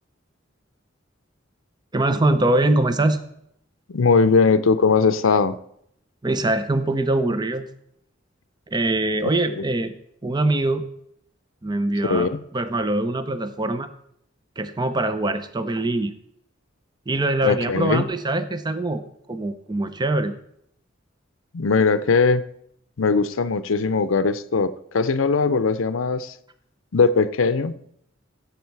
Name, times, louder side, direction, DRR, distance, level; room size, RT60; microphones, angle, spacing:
voice 1, 1.9-3.2 6.2-7.7 8.7-9.9 10.2-10.8 11.6-13.9 14.6-16.1 17.1-19.0 19.3-20.3, right 2 dB, 20° right, 11 dB, 0.6 m, -23 dB
voice 2, 3.9-5.6 9.6-9.7 12.0-12.4 17.4-18.0 21.5-22.4 23.0-26.3 26.9-27.7, left 4 dB, 85° left, 13 dB, 0.6 m, -20 dB
15.5 x 7.2 x 4.6 m, 0.73 s
head